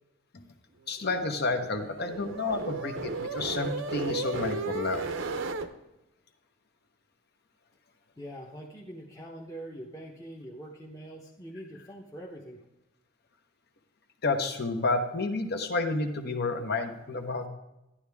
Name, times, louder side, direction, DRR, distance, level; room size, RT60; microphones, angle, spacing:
voice 1, 0.9-5.1 14.2-17.5, left 3 dB, 55° left, 5 dB, 1.2 m, -30 dB
sound 1, 1.0-5.7, right 3 dB, 70° right, 0.8 m, -35 dB
voice 2, 8.2-12.6, right 1 dB, 15° left, -3 dB, 1.0 m, -43 dB
11.5 x 11.5 x 3.5 m, 0.94 s
head